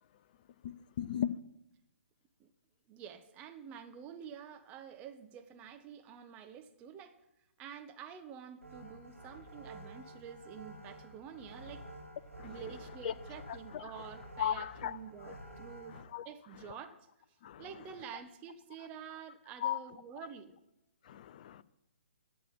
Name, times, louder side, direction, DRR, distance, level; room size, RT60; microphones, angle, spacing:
voice 1, 0.6-1.3 12.4-12.5 13.0-13.1 13.7-13.9 14.4-15.0 15.2-15.3 15.9-16.3 17.4-17.6 19.6-19.8 21.1-21.6, left 10 dB, 35° left, 0.6 m, -36 dB
voice 2, 2.9-7.2 7.6-11.9 12.4-16.0 16.2-17.0 17.6-20.5, right 8 dB, 20° right, 1.0 m, -48 dB
sound 1, 8.6-16.0, right 1 dB, 90° right, 3.3 m, -50 dB
11.5 x 7.6 x 9.0 m
figure-of-eight pair, 130°, 7 cm